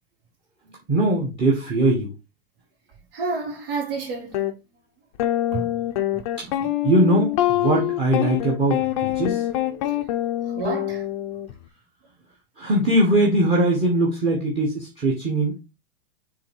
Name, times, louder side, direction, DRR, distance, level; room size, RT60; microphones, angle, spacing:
voice 1, 0.9-2.1 6.8-9.4 12.6-15.6, right 1 dB, 15° right, 1.5 m, -21 dB
voice 2, 3.1-4.4 5.5-5.8 6.1-6.7 10.4-11.0, right 4 dB, 60° right, 3.7 m, -30 dB
sound 1, 4.3-4.5 5.2-11.5, left 13 dB, 35° left, 0.7 m, -25 dB
6.8 x 3.6 x 4.5 m
supercardioid pair, 170°, 31 cm